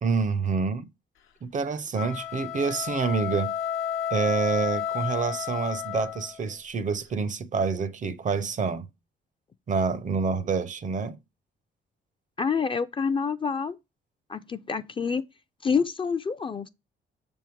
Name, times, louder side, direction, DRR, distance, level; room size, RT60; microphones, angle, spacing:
voice 1, 0.0-0.9 1.4-3.6 4.1-8.9 9.7-11.2, right 5 dB, 40° right, 0.5 m, -27 dB
sound 1, 1.9-6.4, left 9 dB, 80° left, 0.7 m, -31 dB
voice 2, 12.4-13.7 14.3-15.2 15.6-16.7, left 5 dB, 25° left, 0.4 m, -27 dB
6.5 x 3.5 x 4.5 m
cardioid pair, 90°, 20 cm